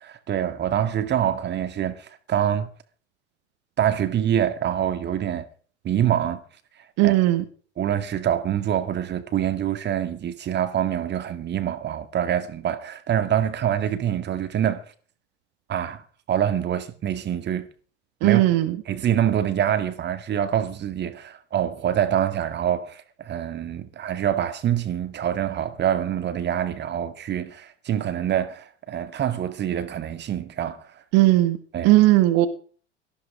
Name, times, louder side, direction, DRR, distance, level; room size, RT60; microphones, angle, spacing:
voice 1, 0.0-2.7 3.8-5.4 5.8-6.4 7.0-7.2 7.8-14.8 15.7-16.0 16.3-17.7 18.2-18.4 18.9-31.0 31.7-32.0, right 10 dB, 30° right, 2.1 m, -25 dB
voice 2, 7.0-7.4 18.2-18.8 31.1-31.6 31.8-32.5, right 16 dB, 45° right, 1.8 m, -17 dB
18.5 x 14.5 x 5.0 m
figure-of-eight pair, 80°, 36 cm